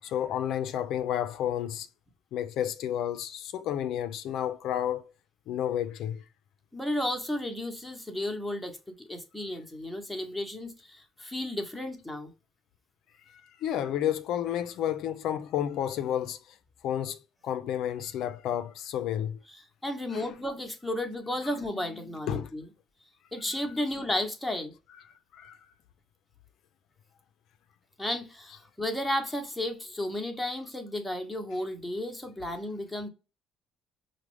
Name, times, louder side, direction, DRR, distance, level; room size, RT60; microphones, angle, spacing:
voice 1, 0.0-1.9 2.3-5.0 5.5-6.2 13.6-16.4 16.8-19.4 20.1-20.3 21.4-22.5 23.5-23.9 24.9-25.6, left 10 dB, 70° left, 0.3 m, -31 dB
voice 2, 6.7-12.3 19.5-22.7 23.3-24.7 28.0-33.1, left 1 dB, 5° left, 0.8 m, -33 dB
4.9 x 2.0 x 3.0 m
cardioid pair, 95°, 0 cm